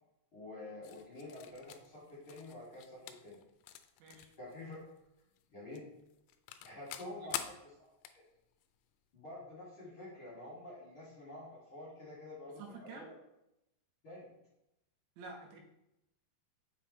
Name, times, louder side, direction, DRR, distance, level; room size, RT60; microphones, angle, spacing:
voice 1, 0.3-3.4 4.4-4.8 5.5-5.8 6.6-7.4 7.8-8.2 9.1-13.2 14.0-14.3, left 2 dB, 35° left, -8 dB, 2.4 m, -48 dB
sound 1, 0.8-5.5 5.7-8.9, left 12 dB, 85° left, 2.8 m, -47 dB
voice 2, 4.0-4.3 7.2-7.3 12.6-13.1 15.2-15.6, right 3 dB, 80° right, 1 dB, 3.3 m, -49 dB
7.3 x 5.6 x 3.2 m, 0.85 s
omnidirectional pair, 5.2 m